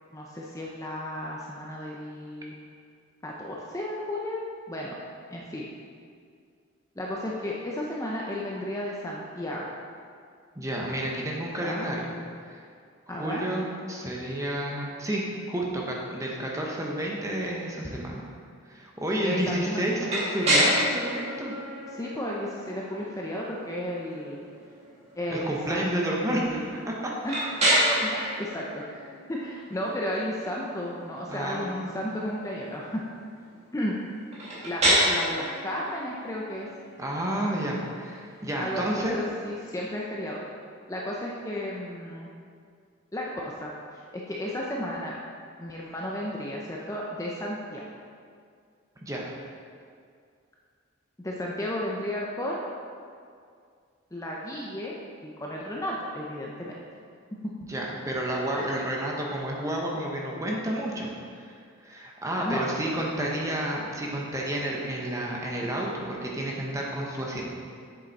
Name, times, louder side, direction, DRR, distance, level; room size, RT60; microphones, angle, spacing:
voice 1, 0.1-2.5 3.2-4.4 4.7-5.0 5.3-5.7 7.0-9.7 11.6-11.9 13.1-13.4 19.2-19.8 21.9-24.4 25.2-26.7 27.2-27.4 27.7-33.0 33.7-33.9 34.6-36.7 38.6-40.4 40.9-42.3 43.1-45.1 45.6-47.8 51.2-52.6 54.1-54.9 55.2-56.7 58.5-58.7 62.4-62.8, left 1 dB, 15° left, -3 dB, 0.6 m, -33 dB
voice 2, 10.5-12.1 12.5-12.6 13.1-18.2 18.7-21.5 25.3-27.1 28.0-28.1 31.3-32.0 37.0-39.2 49.0-49.3 57.7-61.5 61.8-67.6, right 1 dB, 15° right, -2 dB, 1.0 m, -30 dB
sound 1, 20.1-39.8, equal, 30° right, 1.9 m, -30 dB
7.7 x 7.3 x 4.1 m, 2.2 s
head